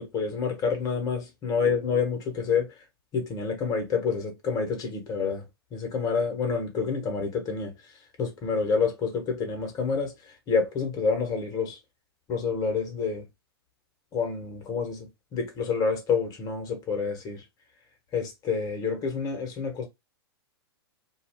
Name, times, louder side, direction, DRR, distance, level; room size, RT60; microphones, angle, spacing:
voice 1, 0.0-2.8 3.1-5.5 5.7-7.9 8.2-11.8 12.3-13.2 14.1-17.4 18.1-19.9, left 5 dB, 25° left, 1.2 m, -28 dB
2.5 x 2.3 x 3.5 m
figure-of-eight pair, 110°, 14 cm